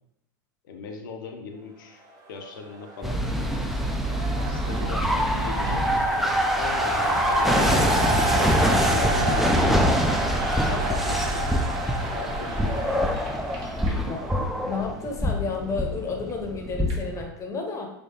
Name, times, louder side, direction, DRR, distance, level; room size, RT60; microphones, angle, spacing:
voice 1, 0.6-2.0 2.3-3.2 4.4-7.7 8.3-9.9 10.3-11.8 12.1-13.0 13.9-14.1, left 5 dB, 70° left, 4 dB, 0.6 m, -38 dB
sound 1, 2.7-14.7, right 2 dB, 30° right, 0.7 m, -29 dB
sound 2, 3.0-17.2, equal, ahead, 0.3 m, -25 dB
sound 3, 5.6-6.1 6.5-6.6 8.4-10.5 12.4-15.1 16.2-17.2, right 2 dB, 50° right, 1.2 m, -45 dB
voice 2, 14.1-17.9, left 4 dB, 25° left, 2 dB, 0.8 m, -32 dB
3.5 x 3.1 x 2.7 m, 0.81 s
hypercardioid pair, 90°, 11 cm